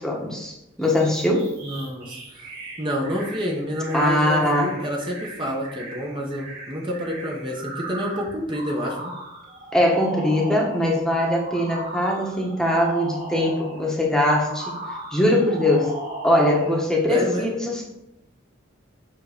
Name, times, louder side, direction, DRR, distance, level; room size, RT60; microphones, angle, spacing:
voice 1, 0.0-1.5 3.9-4.7 9.7-14.7 15.1-15.9 16.2-17.8, left 1 dB, 5° left, -2 dB, 1.3 m, -21 dB
sound 1, 0.8-11.0 11.4-13.9 14.3-16.8, right 1 dB, 50° right, 2.8 m, -37 dB
voice 2, 1.6-2.5 2.8-9.1 17.1-17.5, equal, 25° right, -1 dB, 1.1 m, -28 dB
7.5 x 3.8 x 6.7 m, 0.88 s
head